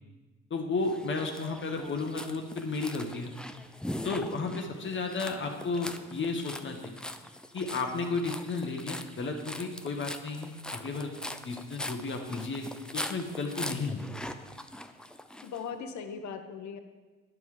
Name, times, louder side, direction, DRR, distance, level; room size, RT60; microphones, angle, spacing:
voice 1, 0.5-3.3 4.0-6.9 7.5-11.1 11.4-12.7 12.9-14.1, left 3 dB, 40° left, 3 dB, 1.0 m, -33 dB
sound 1, 0.8-15.6, left 1 dB, 5° left, 0.4 m, -42 dB
voice 2, 15.4-16.8, left 6 dB, 70° left, 7 dB, 0.9 m, -39 dB
11.0 x 5.5 x 4.8 m, 1.3 s
cardioid pair, 90°, 30 cm